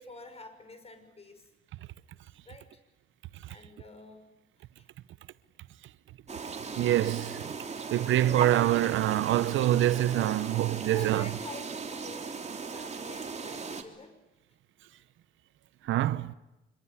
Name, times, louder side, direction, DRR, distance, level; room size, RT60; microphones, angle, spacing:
voice 1, 0.0-1.4 2.4-2.7 3.5-4.3 4.8-4.9 8.2-8.6 10.9-14.2, left 2 dB, 30° left, 6.1 m, -48 dB
sound 1, 6.3-13.8, right 5 dB, 35° right, 3.2 m, -37 dB
voice 2, 6.8-7.4 7.9-11.3 15.9-16.3, right 13 dB, 80° right, 0.9 m, -25 dB
26.0 x 23.0 x 9.8 m
cardioid pair, 90°, 20 cm